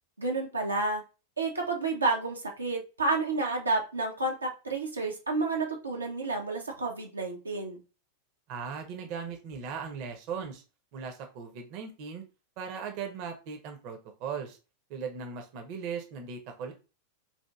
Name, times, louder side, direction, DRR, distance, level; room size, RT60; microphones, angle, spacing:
voice 1, 0.2-1.0 1.4-7.8, right 3 dB, 80° right, 1 dB, 0.6 m, -30 dB
voice 2, 8.5-10.6 10.9-12.2 12.6-14.6 14.9-16.7, right 6 dB, 45° right, 5 dB, 0.7 m, -38 dB
4.2 x 2.5 x 2.3 m, 0.32 s
figure-of-eight pair, 90°, 0 cm